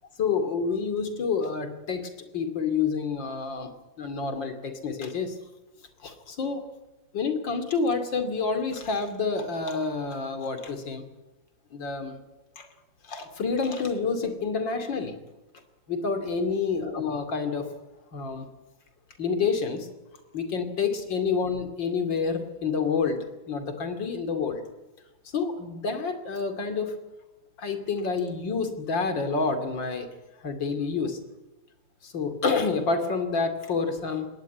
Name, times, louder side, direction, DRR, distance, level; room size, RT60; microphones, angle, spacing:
voice 1, 0.2-3.7 4.0-5.4 6.0-6.6 7.1-11.0 11.7-12.2 12.6-12.7 13.1-15.1 15.9-17.7 18.1-18.5 19.2-19.9 20.3-23.2 23.5-24.6 25.3-26.9 27.6-30.1 30.4-31.2 32.0-34.3, left 5 dB, 85° left, 8 dB, 3.2 m, -28 dB
21.0 x 18.0 x 9.4 m, 1.1 s
omnidirectional pair, 2.0 m